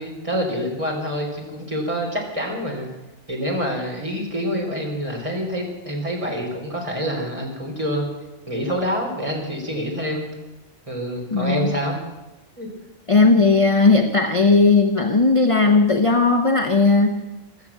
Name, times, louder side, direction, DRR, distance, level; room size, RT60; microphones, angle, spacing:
voice 1, 0.0-2.9 3.3-8.1 8.5-10.3 10.9-11.9 12.6-12.7, equal, 25° right, 0 dB, 3.7 m, -26 dB
voice 2, 11.3-11.7 13.1-17.3, left 3 dB, 30° left, 6 dB, 0.8 m, -16 dB
15.5 x 13.0 x 7.3 m, 1.0 s
omnidirectional pair, 1.3 m